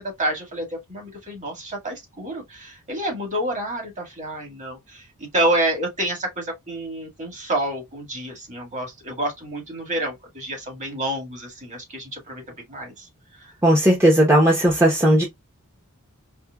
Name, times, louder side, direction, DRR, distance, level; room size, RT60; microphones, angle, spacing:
voice 1, 0.0-12.4 12.7-13.1 13.4-13.5, right 1 dB, 35° right, 1.8 m, -28 dB
voice 2, 13.6-15.2, right 1 dB, 10° right, 1.0 m, -16 dB
4.4 x 2.9 x 2.3 m
head